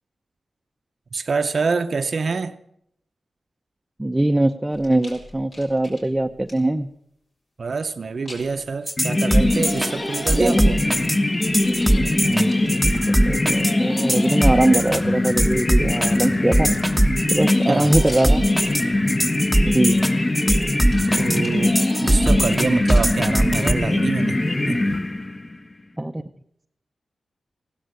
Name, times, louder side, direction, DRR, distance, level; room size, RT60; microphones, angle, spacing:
voice 1, 1.1-2.5 7.6-10.8 17.7-17.9 21.0-24.4 24.7-24.8, right 4 dB, 60° right, 9 dB, 0.6 m, -26 dB
voice 2, 4.0-6.9 10.4-10.6 12.2-16.7 17.3-18.4 19.7-20.0 26.0-26.2, right 1 dB, 15° right, 6 dB, 0.6 m, -22 dB
sound 1, 4.7-6.8 8.2-8.7 9.8-11.1 11.3-13.8 14.2-15.2 15.7-18.9 19.6-20.0 20.7-22.0 22.9-23.5 24.0-24.1, left 1 dB, 60° left, 4.5 m, -44 dB
sound 2, 8.9-23.7, right 1 dB, 5° left, 1.2 m, -21 dB
sound 3, 9.0-25.6, left 2 dB, 35° left, 1.4 m, -22 dB
15.5 x 12.5 x 6.5 m, 0.76 s
cardioid pair, 55°, 0 cm